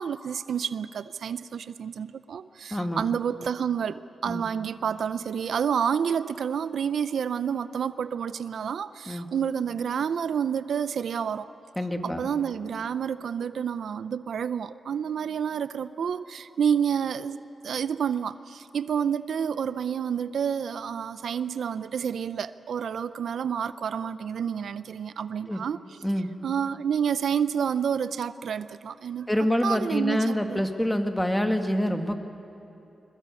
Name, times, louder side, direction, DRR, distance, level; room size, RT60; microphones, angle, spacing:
voice 1, 0.0-11.5 12.0-17.4 17.6-26.0 26.4-29.3 29.6-30.6, right 7 dB, 80° right, 14 dB, 0.5 m, -29 dB
voice 2, 2.7-3.0 4.3-4.5 9.1-9.3 11.8-12.3 25.5-25.6 26.0-26.3 29.3-32.2, equal, 10° left, 5 dB, 1.8 m, -26 dB
22.0 x 21.5 x 8.3 m, 2.8 s
cardioid pair, 80°, 0 cm